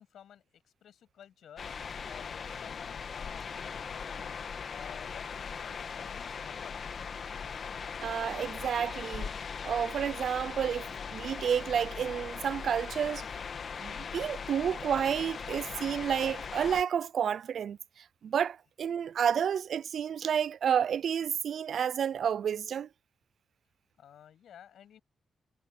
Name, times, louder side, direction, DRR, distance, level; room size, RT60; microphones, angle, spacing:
voice 1, 0.0-4.4 4.7-6.8 24.0-25.0, left 9 dB, 80° left, 7.4 m, -53 dB
sound 1, 1.6-16.8, left 6 dB, 50° left, 1.7 m, -39 dB
voice 2, 8.0-9.3 9.6-13.2 13.8-22.9, right 8 dB, 65° right, 0.4 m, -30 dB
cardioid pair, 115°, 0 cm